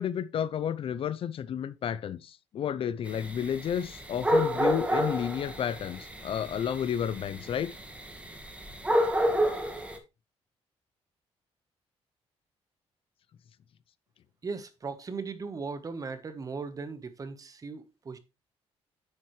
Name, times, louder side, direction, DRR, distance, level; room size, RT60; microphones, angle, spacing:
voice 1, 0.0-7.7, left 9 dB, 55° left, 0.6 m, -31 dB
sound 1, 3.1-10.0, equal, 10° right, 1.9 m, -29 dB
voice 2, 14.4-18.2, right 4 dB, 30° right, 1.3 m, -38 dB
9.5 x 7.5 x 3.2 m
cardioid pair, 115°, 11 cm